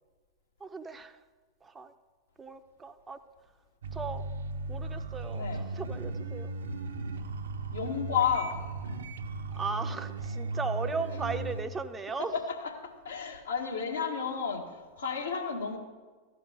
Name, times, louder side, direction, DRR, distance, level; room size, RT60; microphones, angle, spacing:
voice 1, 0.6-1.2 1.6-1.9 2.4-3.2 3.9-4.3 4.7-6.5 9.5-12.3, right 4 dB, 15° right, 9 dB, 0.6 m, -37 dB
sound 1, 3.8-11.6, right 3 dB, 65° right, 0.8 m, -36 dB
voice 2, 5.3-5.6 7.7-8.5 12.3-12.4 13.0-15.8, left 7 dB, 70° left, -1 dB, 1.8 m, -31 dB
14.0 x 5.0 x 6.7 m, 1.4 s
figure-of-eight pair, 90°, 0 cm